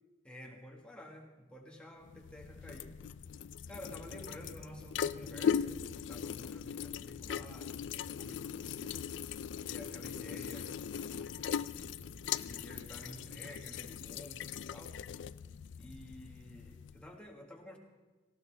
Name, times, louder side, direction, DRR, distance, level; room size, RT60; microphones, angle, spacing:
voice 1, 0.2-2.9 3.7-9.0 9.6-11.8 12.5-15.0 15.8-17.8, left 1 dB, 5° left, 0 dB, 1.5 m, -51 dB
sound 1, 2.1-17.1, left 8 dB, 80° left, 0.3 m, -39 dB
sound 2, 3.7-13.1, left 1 dB, 45° left, 0.7 m, -57 dB
18.0 x 16.0 x 3.3 m, 1.2 s
head